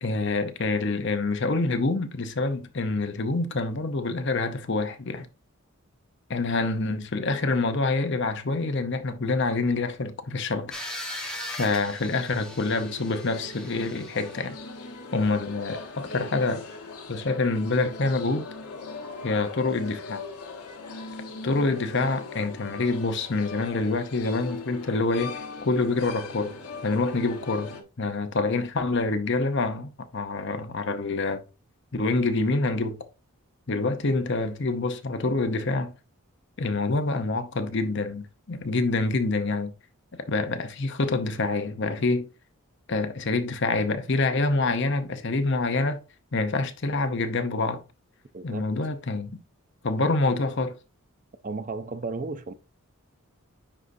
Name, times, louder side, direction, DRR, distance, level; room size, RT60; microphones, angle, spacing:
voice 1, 0.0-5.3 6.3-10.7 11.5-14.6 15.1-16.6 17.1-18.5 19.2-20.2 21.4-26.6 26.8-31.4 31.9-33.0 33.7-35.9 36.6-39.7 40.3-42.3 42.9-46.0 46.3-47.8 48.4-49.3 49.8-50.8, left 3 dB, 55° left, 0.7 m, -26 dB
sound 1, 10.7-14.5, left 1 dB, 5° left, 1.2 m, -39 dB
sound 2, 12.4-27.8, left 3 dB, 85° left, 1.3 m, -40 dB
voice 2, 48.3-48.7 50.1-50.2 51.4-52.5, right 3 dB, 35° right, 0.5 m, -34 dB
9.8 x 4.1 x 2.6 m
head